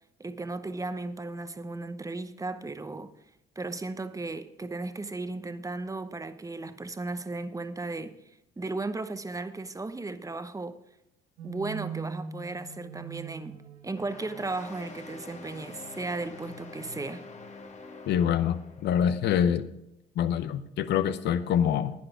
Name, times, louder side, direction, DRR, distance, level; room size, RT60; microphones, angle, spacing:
voice 1, 0.2-3.1 3.6-8.2 8.6-10.8 11.4-17.2, right 3 dB, 15° right, 0.9 m, -35 dB
sound 1, 11.4-17.6, right 6 dB, 80° right, 1.3 m, -44 dB
sound 2, 14.0-19.1, left 3 dB, 35° left, 1.6 m, -46 dB
voice 2, 18.1-19.7 20.2-21.9, left 9 dB, 65° left, 0.8 m, -25 dB
10.5 x 10.0 x 4.8 m
hypercardioid pair, 60°, 19 cm